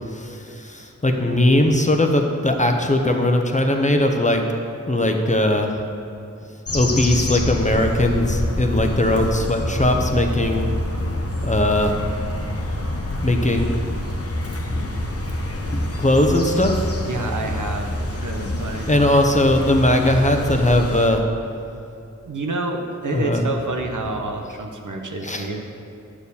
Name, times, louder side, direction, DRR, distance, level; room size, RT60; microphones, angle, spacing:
voice 1, 0.1-4.4 4.9-5.8 6.7-10.7 11.5-12.0 13.2-13.7 15.7-16.8 18.9-21.2 23.1-23.4 25.2-25.5, left 1 dB, 25° left, 3 dB, 0.8 m, -19 dB
sound 1, 6.7-21.1, left 1 dB, 50° left, 1.0 m, -26 dB
voice 2, 17.0-19.0 22.2-25.6, right 2 dB, 75° right, 3 dB, 1.0 m, -28 dB
9.9 x 4.5 x 7.0 m, 2.6 s
wide cardioid pair, 60°, 31 cm